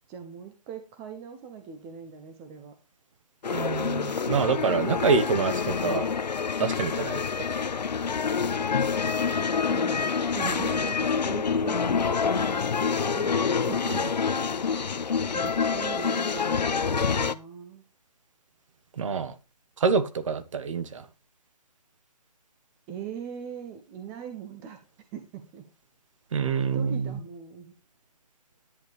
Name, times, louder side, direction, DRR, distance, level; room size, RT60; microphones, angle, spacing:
voice 1, 0.1-2.7 9.4-13.4 13.7-14.0 15.3-17.8 22.9-24.8 25.1-25.7 26.7-27.7, right 7 dB, 10° right, 7 dB, 0.5 m, -40 dB
sound 1, 3.4-17.4, left 6 dB, 85° left, 0.8 m, -27 dB
voice 2, 3.5-6.1 6.6-7.2 13.9-14.1 19.0-19.3 19.8-21.0 26.3-27.2, right 5 dB, 50° right, 12 dB, 1.4 m, -26 dB
10.5 x 9.1 x 3.2 m, 0.29 s
hypercardioid pair, 160°, 21 cm